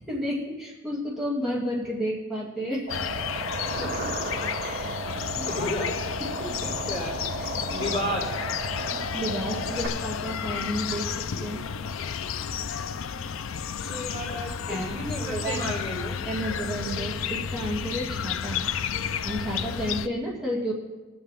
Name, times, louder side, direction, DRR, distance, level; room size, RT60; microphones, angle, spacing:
voice 1, 0.1-2.9 4.6-5.0 5.4-5.5 6.4-6.5 7.7-7.9 8.9-11.6 13.8-13.9 14.7-14.9 15.2-15.7 16.3-18.7 19.2-20.7, equal, 5° right, -8 dB, 2.2 m, -31 dB
sound 1, 2.9-20.1, left 7 dB, 80° left, 0.5 m, -32 dB
sound 2, 2.9-9.9, right 2 dB, 60° right, 2.0 m, -34 dB
voice 2, 3.8-4.1 5.0-5.9 6.6-7.2 7.7-8.5 13.8-16.2, equal, 30° left, -5 dB, 3.9 m, -33 dB
21.5 x 7.8 x 3.5 m, 1.3 s
head